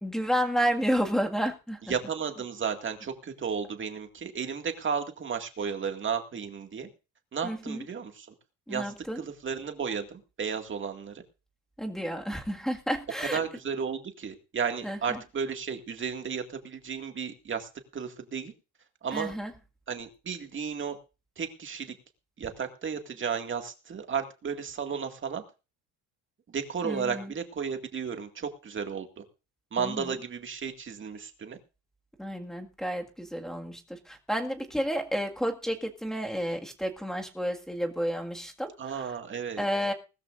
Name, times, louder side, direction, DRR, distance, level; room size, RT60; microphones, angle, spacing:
voice 1, 0.0-2.0 7.4-7.8 8.7-9.2 11.8-13.4 14.8-15.2 19.1-19.5 26.8-27.3 29.8-30.1 32.2-39.1 39.6-39.9, equal, ahead, 3 dB, 1.9 m, -31 dB
voice 2, 1.9-6.9 7.3-8.3 8.7-11.2 13.2-18.5 19.0-19.3 19.9-21.0 21.4-22.0 22.4-25.4 26.5-29.2 29.7-31.6 38.8-39.7, right 6 dB, 30° right, 5 dB, 2.1 m, -33 dB
20.0 x 13.5 x 2.6 m, 0.31 s
cardioid pair, 140°, 39 cm